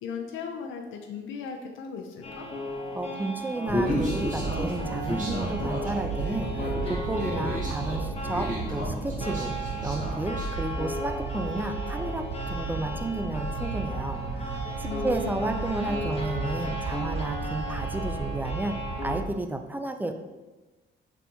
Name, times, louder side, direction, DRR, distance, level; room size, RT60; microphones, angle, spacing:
voice 1, 0.0-2.5 14.8-15.4, left 6 dB, 80° left, 2 dB, 0.5 m, -37 dB
sound 1, 2.2-19.2, equal, 30° left, 0.8 m, -36 dB
voice 2, 2.9-9.5 9.8-18.8 19.0-20.2, right 2 dB, 10° right, 7 dB, 0.3 m, -32 dB
Human voice, 3.7-10.5, equal, 40° right, 1.4 m, -32 dB
sound 2, 3.7-19.3, right 4 dB, 70° right, 0.6 m, -34 dB
4.2 x 3.4 x 2.7 m, 1.2 s
cardioid pair, 90°, 20 cm